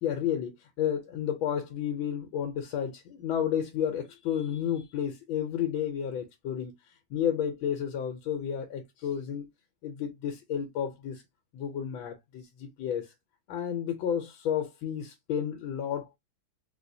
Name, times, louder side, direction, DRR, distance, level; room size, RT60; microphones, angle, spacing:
voice 1, 0.0-6.7 7.1-9.4 9.8-11.2 11.5-13.1 13.5-16.2, left 9 dB, 85° left, 1.5 m, -31 dB
3.7 x 2.7 x 2.6 m
omnidirectional pair, 2.1 m